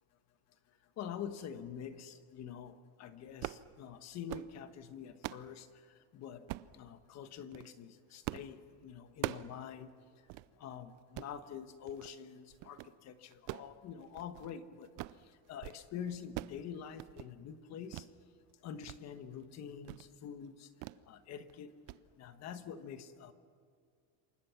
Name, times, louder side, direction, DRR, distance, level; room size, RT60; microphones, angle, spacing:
voice 1, 1.0-5.7 6.1-6.5 6.7-9.9 10.6-14.9 15.5-18.0 18.6-20.7 21.1-21.7 22.2-23.3, left 8 dB, 35° left, 10 dB, 1.4 m, -46 dB
sound 1, 3.3-3.7 4.1-4.5 4.9-5.5 6.5-6.8 7.4-7.7 8.3-8.5 8.8-9.6 9.9-10.0 10.3-10.5 11.0-11.4 11.9-12.2 12.5-12.9 13.3-14.6 14.8-15.2 15.5-15.8 16.1-16.6 16.9-17.3 17.9-18.1 18.5-19.0 19.3-19.4 19.8-20.1 20.8-21.0 21.4-21.6 21.9-22.0, right 18 dB, 45° right, 0.6 m, -43 dB
28.0 x 24.0 x 6.0 m, 2.3 s
cardioid pair, 165°, 45 cm